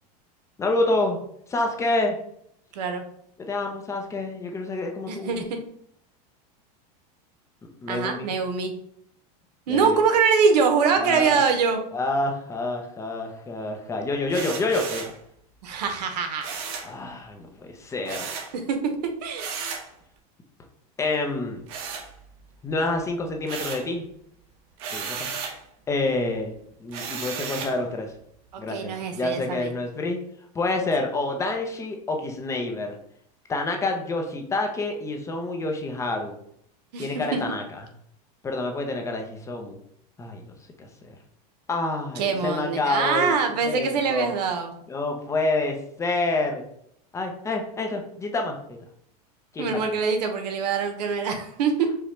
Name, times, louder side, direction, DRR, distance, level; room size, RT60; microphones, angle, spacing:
voice 1, 0.6-1.2 1.5-2.2 3.4-5.4 7.8-8.3 9.7-10.0 11.0-11.4 11.9-15.0 16.8-18.3 21.0-21.6 22.6-24.1 24.9-25.3 25.9-26.6 26.8-28.1 28.6-30.2 30.5-33.0 33.5-36.4 37.0-37.8 38.4-39.8 40.2-40.5 40.8-41.1 41.7-43.3 43.6-44.3 44.9-46.7 47.1-48.8 49.5-49.7, left 2 dB, 15° left, 3 dB, 0.6 m, -28 dB
voice 2, 2.7-3.0 5.1-5.6 7.9-8.7 9.7-11.8 15.6-16.4 18.5-19.5 28.5-29.7 36.9-37.4 42.2-44.7 49.6-51.9, right 5 dB, 90° right, 5 dB, 1.0 m, -24 dB
sound 1, 14.3-15.2 16.4-16.9 18.0-18.5 19.3-19.9 21.7-22.5 22.9-23.9 24.8-25.6 26.9-27.8, right 6 dB, 60° right, 1.0 m, -34 dB
5.1 x 2.2 x 4.3 m, 0.70 s
supercardioid pair, 150°, 20 cm